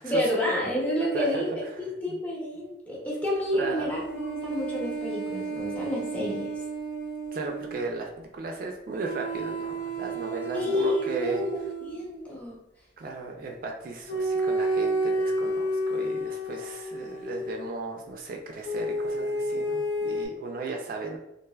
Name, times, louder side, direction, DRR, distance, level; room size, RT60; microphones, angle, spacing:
voice 1, 0.0-1.5 1.8-6.5 10.5-11.6 11.9-12.6, left 1 dB, 10° left, -5 dB, 0.7 m, -29 dB
voice 2, 3.5-3.9 7.3-11.4 13.0-21.2, right 3 dB, 55° right, 2 dB, 0.3 m, -35 dB
sound 1, 4.1-7.8 9.0-12.1 14.1-17.6 18.6-20.3, right 1 dB, 75° left, 0.5 m, -31 dB
3.2 x 2.4 x 2.3 m, 0.87 s
head